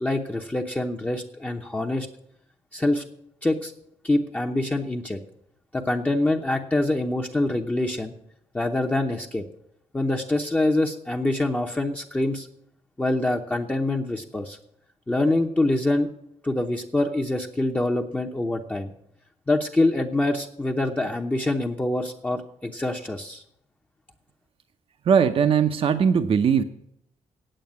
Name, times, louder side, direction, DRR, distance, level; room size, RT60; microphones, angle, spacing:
voice 1, 0.0-2.1 2.7-3.0 3.4-3.7 4.0-5.2 5.7-8.1 8.5-9.4 9.9-12.5 13.0-14.6 15.1-16.1 16.4-18.9 19.5-23.4, left 2 dB, 10° left, 1 dB, 0.8 m, -25 dB
voice 2, 25.1-26.6, right 7 dB, 50° right, 9 dB, 0.7 m, -19 dB
8.9 x 8.3 x 9.4 m, 0.75 s
cardioid pair, 130°, 12 cm